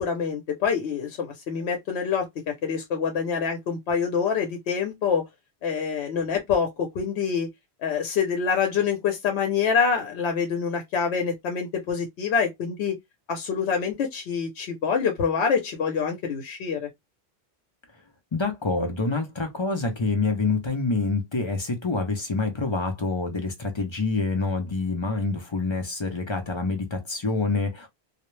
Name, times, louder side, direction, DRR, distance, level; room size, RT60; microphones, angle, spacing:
voice 1, 0.0-2.3 2.6-5.2 5.6-7.5 7.8-12.9 13.3-16.9, left 6 dB, 85° left, 0.9 m, -26 dB
voice 2, 18.3-27.9, left 3 dB, 35° left, 0.5 m, -27 dB
2.3 x 2.0 x 3.0 m
omnidirectional pair, 1.1 m